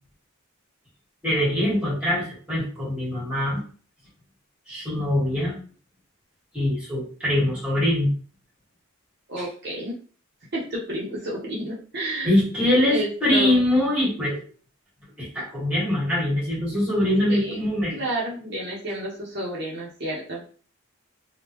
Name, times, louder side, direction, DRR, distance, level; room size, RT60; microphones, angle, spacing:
voice 1, 1.2-3.6 4.7-5.6 6.5-8.1 9.4-9.5 12.2-14.4 15.2-18.0, left 1 dB, 5° right, -7 dB, 1.7 m, -23 dB
voice 2, 9.3-10.0 10.5-12.3 12.9-13.6 17.3-17.6 17.9-20.5, right 1 dB, 50° right, -6 dB, 0.9 m, -30 dB
3.5 x 2.3 x 3.0 m, 0.41 s
head